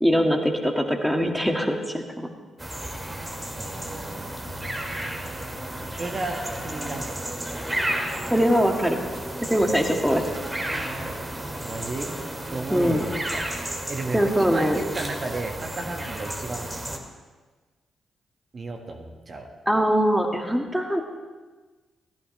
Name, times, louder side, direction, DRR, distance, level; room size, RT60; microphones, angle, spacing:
voice 1, 0.0-2.3 8.3-9.0 9.4-10.2 12.7-13.0 14.1-14.8 19.7-21.0, equal, 5° right, 3 dB, 1.9 m, -22 dB
sound 1, 2.6-17.0, right 1 dB, 20° right, 2.2 m, -32 dB
voice 2, 3.6-4.5 5.0-5.2 6.0-7.2 11.6-12.1 12.5-13.4 13.9-16.7 18.5-19.5, right 3 dB, 45° right, 3 dB, 1.6 m, -33 dB
16.0 x 14.0 x 3.3 m, 1.3 s
hypercardioid pair, 40°, 0 cm